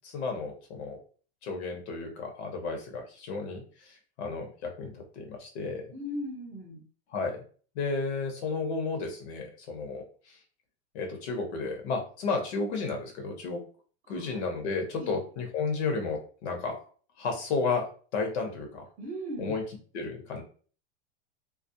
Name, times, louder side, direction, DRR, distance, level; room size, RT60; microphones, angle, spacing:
voice 1, 0.0-1.0 1.4-5.9 7.1-7.4 7.7-10.3 10.9-13.6 14.1-16.8 17.2-18.8 19.4-19.6 19.9-20.4, left 4 dB, 70° left, 3 dB, 1.0 m, -33 dB
voice 2, 5.9-6.8 14.1-14.4 15.0-15.2 19.0-19.6, equal, 25° right, 0 dB, 0.8 m, -38 dB
2.4 x 2.0 x 2.7 m, 0.41 s
supercardioid pair, 150°, 34 cm